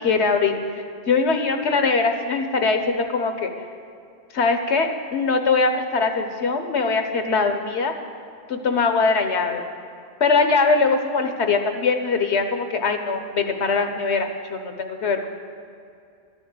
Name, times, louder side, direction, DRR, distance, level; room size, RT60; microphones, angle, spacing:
voice 1, 0.0-3.5 4.3-7.9 8.5-9.6 10.2-15.3, left 4 dB, 90° left, 6 dB, 1.3 m, -22 dB
12.0 x 7.1 x 9.2 m, 2.4 s
omnidirectional pair, 1.1 m